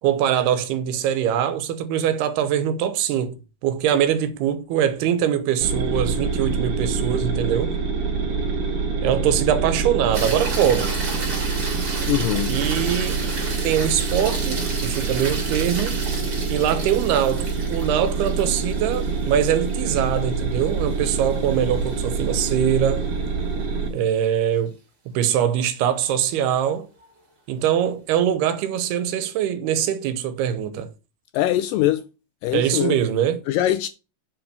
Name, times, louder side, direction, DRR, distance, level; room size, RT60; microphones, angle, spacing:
voice 1, 0.0-3.4 3.6-7.7 9.0-11.0 12.4-13.2 13.6-16.0 16.5-23.0 23.9-24.8 25.1-26.9 27.5-30.9 32.5-33.4, right 9 dB, 90° right, 3.0 m, -22 dB
sound 1, 5.6-23.9, right 4 dB, 65° right, 3.9 m, -26 dB
sound 2, 10.1-22.5 27.0-27.1, right 3 dB, 35° right, 3.4 m, -33 dB
voice 2, 12.1-12.6 31.3-32.0 32.4-33.0 33.5-33.9, left 13 dB, 85° left, 1.9 m, -22 dB
7.9 x 6.0 x 6.8 m
omnidirectional pair, 4.5 m